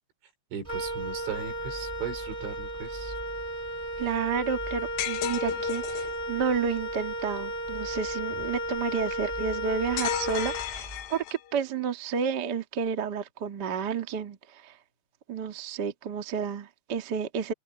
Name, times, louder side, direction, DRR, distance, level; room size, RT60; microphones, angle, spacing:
voice 1, 0.5-3.1, right 7 dB, 80° right, 6.6 m, -37 dB
Wind instrument woodwind instrument, 0.6-11.1, equal, 10° right, 2.7 m, -34 dB
voice 2, 4.0-14.8 15.3-17.5, right 6 dB, 50° right, 1.2 m, -31 dB
sound 1, 5.0-6.2 10.0-11.6, left 11 dB, 70° left, 3.4 m, -33 dB
open air
omnidirectional pair, 5.2 m